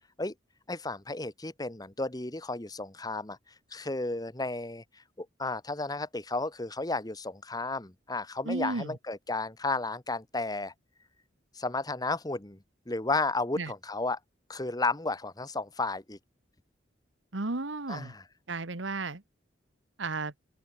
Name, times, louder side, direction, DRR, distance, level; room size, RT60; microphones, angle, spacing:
voice 1, 0.7-3.4 3.7-4.8 5.2-10.7 11.5-12.6 12.9-14.2 14.5-16.2 17.9-18.2, left 3 dB, 20° left, 1.3 m, -33 dB
voice 2, 8.4-9.0 13.6-13.7 17.3-18.1 18.5-19.2 20.0-20.3, right 3 dB, 90° right, 1.5 m, -33 dB
open air
head